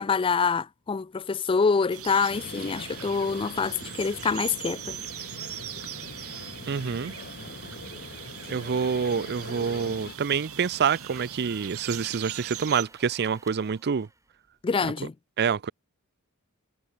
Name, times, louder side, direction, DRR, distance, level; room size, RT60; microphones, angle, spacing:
voice 1, 0.0-5.0 14.6-15.1, left 5 dB, 25° left, 0.3 m, -26 dB
sound 1, 1.9-12.9, right 9 dB, 75° right, 5.1 m, -40 dB
sound 2, 2.3-10.2, left 3 dB, 45° left, 2.2 m, -43 dB
voice 2, 6.7-7.1 8.5-14.1 15.4-15.7, right 6 dB, 50° right, 0.5 m, -27 dB
sound 3, 9.2-14.9, right 3 dB, 15° right, 5.6 m, -55 dB
head